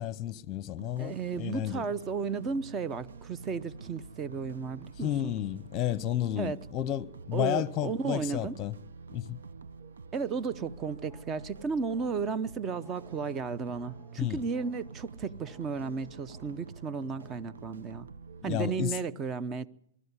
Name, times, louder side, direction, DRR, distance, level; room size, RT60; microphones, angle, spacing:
voice 1, 0.0-1.9 5.0-8.8 9.1-9.4 14.2-14.4 18.5-18.9, left 12 dB, 30° left, 0.8 m, -32 dB
sound 1, 0.8-18.4, right 5 dB, 85° right, 0.8 m, -48 dB
voice 2, 1.0-5.3 6.4-6.6 7.3-8.6 10.1-18.1 18.4-19.7, right 5 dB, 25° right, 0.8 m, -34 dB
sound 2, 10.6-17.6, left 1 dB, ahead, 2.3 m, -61 dB
23.5 x 13.0 x 9.8 m
hypercardioid pair, 130°, 0 cm